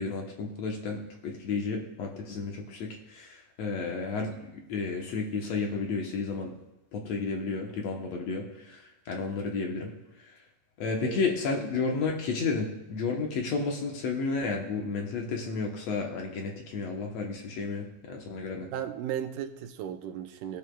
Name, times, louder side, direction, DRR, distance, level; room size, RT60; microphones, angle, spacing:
voice 1, 0.0-4.3 4.7-6.5 6.9-9.9 10.8-18.7, left 4 dB, 65° left, 1 dB, 2.0 m, -32 dB
voice 2, 18.7-20.6, right 9 dB, 90° right, 7 dB, 2.2 m, -35 dB
17.5 x 8.8 x 2.3 m, 0.93 s
omnidirectional pair, 3.7 m